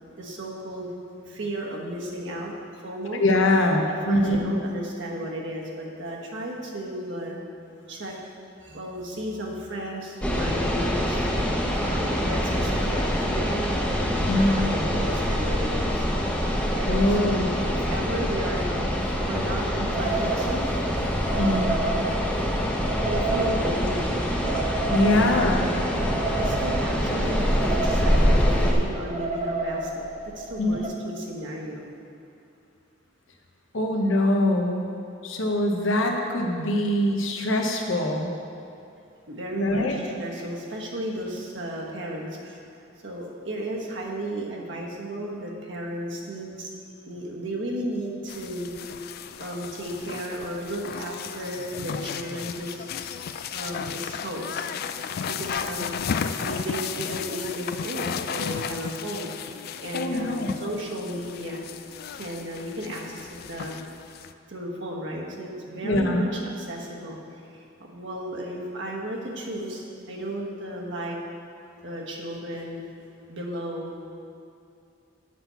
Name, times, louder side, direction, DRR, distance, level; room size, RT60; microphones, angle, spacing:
voice 1, 0.2-0.9 1.3-3.2 4.1-7.4 7.9-8.1 8.6-11.3 11.8-16.1 16.7-18.7 19.2-20.6 21.3-22.0 23.0-24.0 25.1-25.5 26.3-31.8 39.3-42.6 43.0-46.7 47.0-49.0 49.4-52.9 53.5-54.7 55.3-59.5 59.8-61.6 62.1-63.8 64.5-67.2 67.9-71.2 71.8-72.8 73.3-73.9, right 1 dB, 65° right, -1 dB, 1.2 m, -34 dB
voice 2, 3.2-4.4 14.3-14.5 16.9-17.5 21.4-21.6 24.9-25.6 30.6-30.8 33.7-34.9 35.2-38.3 39.6-40.0 59.9-60.5 65.8-66.2, left 1 dB, 85° left, 2 dB, 0.9 m, -23 dB
sound 1, 10.2-28.7, equal, 5° left, 0.7 m, -25 dB
sound 2, 19.9-30.9, right 3 dB, 35° right, 0.8 m, -32 dB
sound 3, 48.3-64.3, left 7 dB, 50° left, 0.3 m, -34 dB
7.6 x 5.9 x 5.7 m, 2.5 s
head